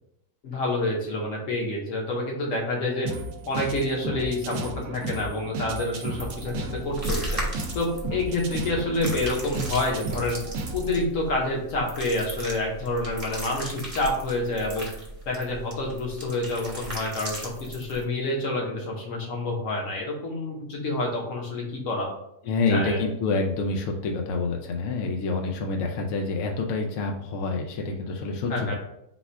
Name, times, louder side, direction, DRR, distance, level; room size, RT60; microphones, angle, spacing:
voice 1, 0.4-3.1 3.5-7.4 7.7-10.4 10.7-14.9 15.3-22.1 22.4-23.0 28.5-28.7, left 2 dB, 55° left, 0 dB, 1.2 m, -28 dB
sound 1, 3.0-11.0, right 2 dB, 75° right, 0.7 m, -34 dB
Schmatzschmatz dry, 6.1-18.0, right 1 dB, 15° right, 0.8 m, -36 dB
voice 2, 22.5-28.7, left 3 dB, 70° left, 1 dB, 0.7 m, -27 dB
4.1 x 2.3 x 4.5 m, 0.79 s
omnidirectional pair, 1.8 m